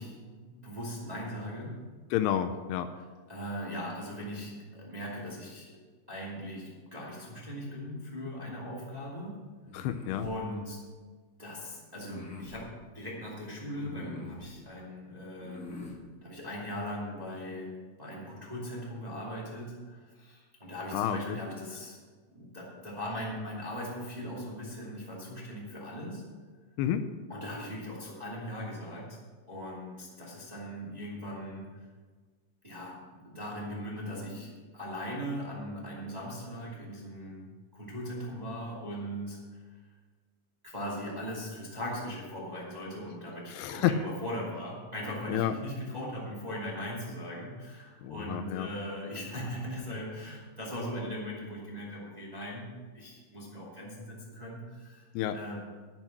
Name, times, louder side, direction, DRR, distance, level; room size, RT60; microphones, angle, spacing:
voice 1, 0.0-1.8 3.3-5.7 6.1-9.4 10.2-10.8 11.4-15.8 16.2-17.7 18.0-22.0 22.3-26.2 27.3-29.2 29.5-31.7 32.6-39.6 40.6-52.7 52.9-55.1 55.3-55.6, equal, 15° right, -5 dB, 1.8 m, -39 dB
voice 2, 2.1-2.9 9.7-10.3 20.9-21.4 26.8-27.1 43.5-44.0 45.3-45.5 48.0-48.7 55.1-55.4, left 11 dB, 80° left, 10 dB, 2.6 m, -30 dB
sound 1, 9.6-10.4 11.9-12.6 13.7-14.5 15.4-16.0, left 2 dB, 50° left, 0.9 m, -44 dB
10.5 x 10.5 x 6.0 m, 1.5 s
omnidirectional pair, 4.8 m